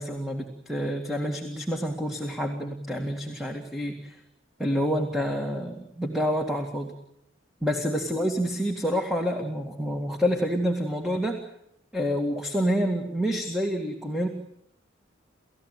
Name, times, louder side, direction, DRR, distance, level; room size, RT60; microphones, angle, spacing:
voice 1, 0.0-4.2 4.6-6.9 7.6-11.4 11.9-14.3, equal, ahead, 3 dB, 2.1 m, -28 dB
30.0 x 15.0 x 9.4 m, 0.79 s
head